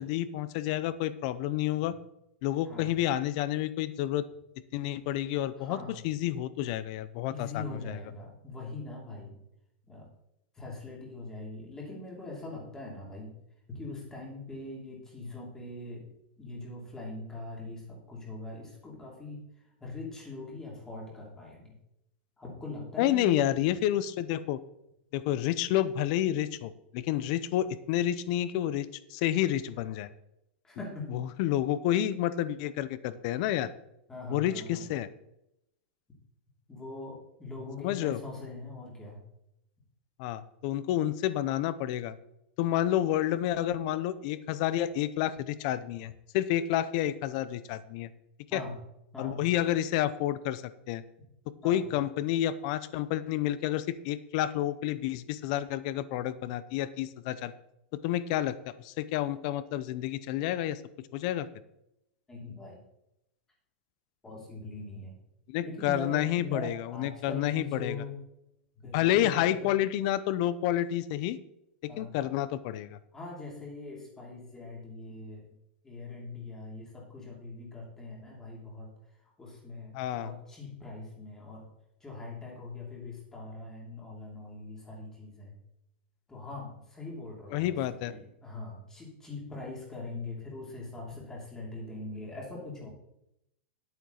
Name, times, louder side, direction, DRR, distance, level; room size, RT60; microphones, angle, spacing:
voice 1, 0.0-1.9 2.4-4.2 4.7-5.8 6.0-8.0 23.0-24.6 25.1-30.1 31.1-33.7 34.3-35.1 37.8-38.2 40.2-42.2 42.6-48.1 48.5-48.6 49.2-50.6 50.9-51.0 51.6-57.5 58.0-60.8 61.1-61.5 65.5-68.0 68.9-71.4 72.0-73.0 79.9-80.3 87.5-88.1, left 12 dB, 40° left, 15 dB, 0.7 m, -29 dB
voice 2, 5.6-6.0 7.3-9.4 9.9-10.1 10.5-13.3 13.7-16.1 16.4-19.4 19.8-21.7 22.4-23.5 30.6-31.1 34.1-34.8 36.7-39.2 48.5-48.8 49.1-49.4 51.6-51.8 62.3-62.8 64.2-65.2 65.6-68.1 68.8-69.7 71.9-72.1 73.1-75.5 75.8-78.9 79.4-81.7 82.0-85.5 86.3-92.9, left 2 dB, 10° left, -2 dB, 2.8 m, -42 dB
10.5 x 9.1 x 4.0 m, 0.82 s
supercardioid pair, 165°, 6 cm